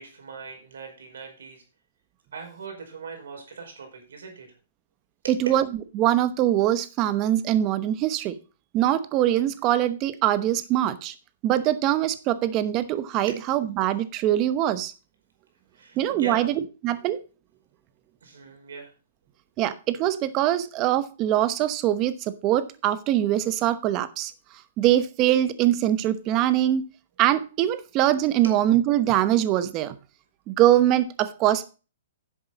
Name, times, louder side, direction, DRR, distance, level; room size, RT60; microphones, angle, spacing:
voice 1, 0.0-1.6 2.3-4.5 5.2-5.3 13.3-13.4 15.7-16.5 18.2-18.9, right 5 dB, 85° right, 3 dB, 4.9 m, -40 dB
voice 2, 5.3-5.7 6.0-8.4 8.7-11.1 11.4-14.9 16.0-17.2 19.6-24.3 24.8-26.9 27.2-29.9 30.5-31.6, right 12 dB, 30° right, 13 dB, 0.9 m, -23 dB
10.5 x 7.6 x 4.0 m, 0.34 s
hypercardioid pair, 155°, 0 cm